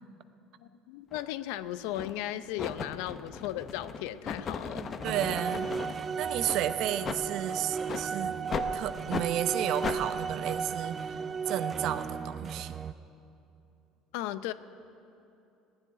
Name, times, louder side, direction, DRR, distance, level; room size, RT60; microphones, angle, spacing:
voice 1, 0.6-4.9 14.1-14.5, left 13 dB, 85° left, 13 dB, 0.5 m, -36 dB
sound 1, 1.1-1.3 1.9-2.2 2.6-6.0 6.4-6.6 7.0-7.2 7.8-8.1 8.5-8.7 9.1-9.3 9.8-10.0, left 6 dB, 35° left, 0.8 m, -36 dB
voice 2, 4.7-5.7 6.0-8.4 8.7-11.2 11.5-12.7, right 11 dB, 65° right, 11 dB, 0.7 m, -32 dB
sound 2, 5.0-12.9, right 6 dB, 30° right, 0.4 m, -35 dB
16.5 x 7.8 x 10.0 m, 2.8 s
supercardioid pair, 115°, 0 cm